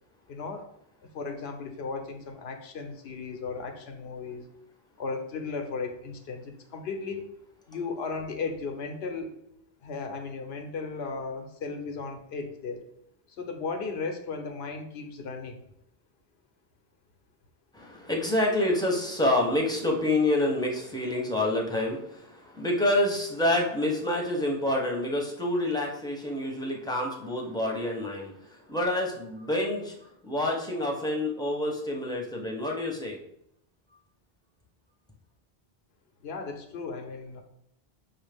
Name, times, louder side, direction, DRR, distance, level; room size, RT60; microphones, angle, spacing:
voice 1, 0.3-0.7 1.0-4.5 5.0-7.3 7.7-9.4 9.8-12.8 13.3-15.6 36.2-37.4, left 4 dB, 90° left, 4 dB, 0.9 m, -36 dB
voice 2, 17.7-33.2, left 1 dB, 5° left, -1 dB, 0.6 m, -28 dB
6.0 x 2.4 x 3.4 m, 0.74 s
omnidirectional pair, 1.0 m